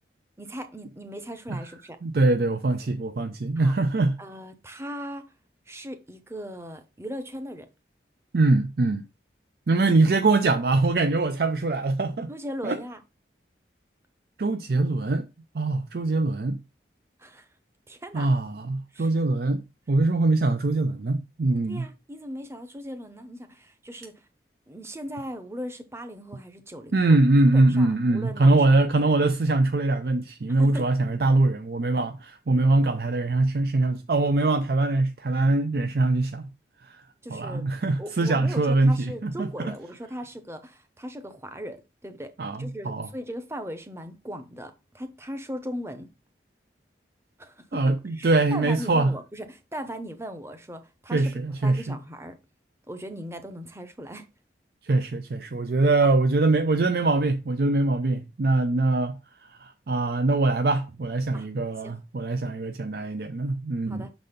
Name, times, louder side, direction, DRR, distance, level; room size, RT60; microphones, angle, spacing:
voice 1, 0.4-2.0 3.6-3.8 4.2-5.3 5.7-7.7 12.3-13.0 17.2-17.5 17.9-18.3 18.9-19.2 21.7-24.2 24.7-27.2 27.5-28.8 30.6-30.9 37.2-37.6 38.0-42.3 42.6-46.1 47.4-52.4 52.9-54.3 58.5-58.6 61.3-61.5 61.8-62.0 63.9-64.1, equal, 15° right, 0.8 m, -38 dB
voice 2, 2.0-4.2 8.3-9.0 9.7-12.3 12.6-12.8 14.4-15.3 15.5-16.6 18.1-19.6 19.9-21.9 26.9-36.5 36.8-37.0 37.3-39.7 42.4-43.1 47.7-49.1 51.1-51.9 54.8-59.2 59.6-64.1, right 2 dB, 60° right, 0.5 m, -23 dB
6.4 x 4.1 x 5.2 m
head